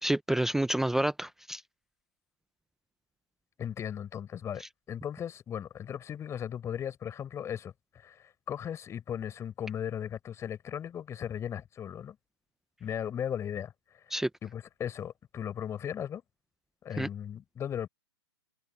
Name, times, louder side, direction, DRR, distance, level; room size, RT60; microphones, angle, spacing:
voice 1, 0.0-1.6 4.6-4.7 14.1-14.3 17.0-17.1, right 1 dB, 5° right, 0.6 m, -29 dB
voice 2, 3.6-12.2 12.8-14.1 14.4-16.2 16.8-17.9, left 9 dB, 20° left, 4.7 m, -37 dB
hypercardioid pair, 135°, 15 cm